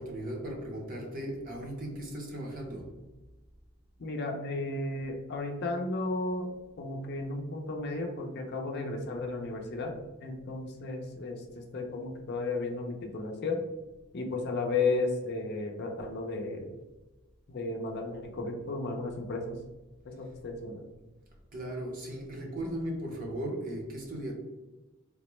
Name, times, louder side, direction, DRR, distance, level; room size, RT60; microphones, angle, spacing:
voice 1, 0.0-3.1 21.5-24.3, right 1 dB, 40° right, 0.7 m, -37 dB
voice 2, 4.0-6.5 6.8-10.0 10.2-13.6 14.1-16.7 17.5-19.5 20.0-20.8, left 3 dB, 50° left, 0.5 m, -34 dB
3.5 x 2.1 x 3.0 m
head